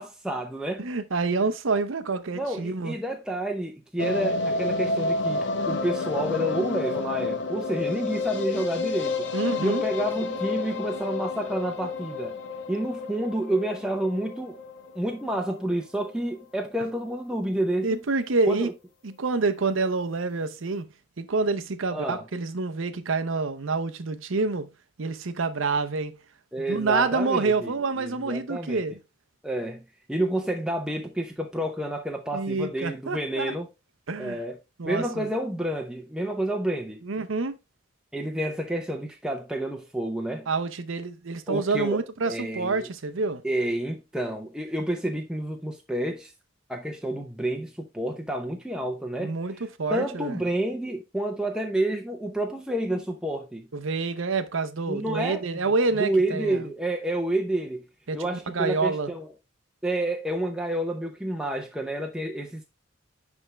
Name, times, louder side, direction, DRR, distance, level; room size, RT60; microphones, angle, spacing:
voice 1, 0.0-0.9 2.3-9.3 9.6-12.4 12.7-14.6 14.9-18.0 18.5-18.7 21.9-22.2 26.5-28.8 29.4-33.7 34.2-34.6 34.8-37.0 38.1-40.5 41.5-42.9 43.4-46.3 46.7-49.4 49.9-53.7 54.9-55.4 55.9-57.9 58.1-59.3 59.8-62.6, right 1 dB, 5° right, 0.7 m, -29 dB
voice 2, 0.8-3.0 9.3-9.8 17.8-18.7 19.0-20.9 21.2-24.7 25.0-26.2 26.7-29.0 32.3-33.5 34.1-34.4 34.8-35.3 37.0-37.6 40.5-43.4 49.2-50.4 53.7-56.6 58.1-59.1, right 3 dB, 75° right, 0.7 m, -27 dB
sound 1, 4.0-16.1 16.4-16.5 16.8-16.9 17.1-17.2, left 3 dB, 60° left, 0.9 m, -30 dB
9.9 x 3.6 x 3.3 m
head